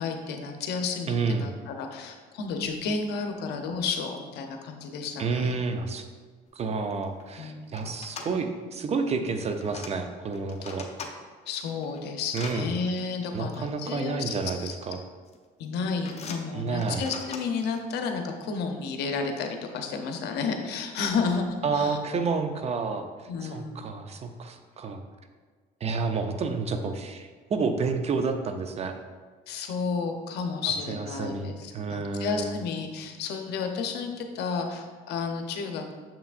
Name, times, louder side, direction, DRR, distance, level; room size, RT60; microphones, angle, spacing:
voice 1, 0.0-5.5 7.4-7.8 10.6-10.7 11.5-14.8 15.6-22.0 23.3-24.0 29.5-35.9, left 5 dB, 80° left, 4 dB, 0.8 m, -32 dB
voice 2, 1.1-1.5 5.2-6.1 6.6-10.9 12.3-12.7 13.3-15.0 16.5-17.0 21.6-23.1 23.4-25.0 25.8-29.0 30.9-32.6, right 4 dB, 40° right, 7 dB, 0.6 m, -30 dB
sound 1, 6.6-6.7 6.9-7.2 7.7-8.3 9.2-9.9 10.3-11.1 11.6-12.6 13.5-13.6 14.6-15.0 15.3-15.6 16.0-17.8, left 5 dB, 40° left, 0.7 m, -41 dB
7.0 x 5.8 x 2.5 m, 1.5 s
cardioid pair, 110°, 17 cm